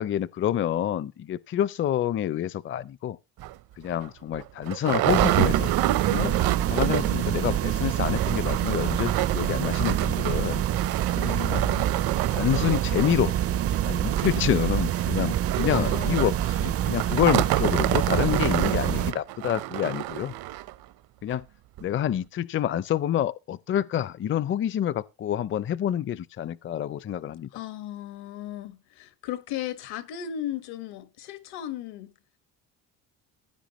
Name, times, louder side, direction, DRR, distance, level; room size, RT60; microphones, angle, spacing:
voice 1, 0.0-3.2 3.8-5.7 6.1-6.3 6.7-10.6 11.5-11.6 12.3-13.3 13.9-20.3 21.2-21.4 21.8-27.5, left 11 dB, 35° left, 0.5 m, -27 dB
sound 1, 3.4-3.5 4.0-4.1 4.3-7.3 7.5-7.6 7.9-20.7 21.3-21.4 21.8-21.9, right 16 dB, 70° right, 0.8 m, -29 dB
sound 2, 5.1-19.1, right 11 dB, 40° right, 0.5 m, -26 dB
voice 2, 6.9-7.6 11.1-11.9 15.7-16.4 17.7-18.1 27.5-32.1, left 12 dB, 85° left, 1.6 m, -36 dB
15.5 x 9.8 x 3.0 m
cardioid pair, 105°, 38 cm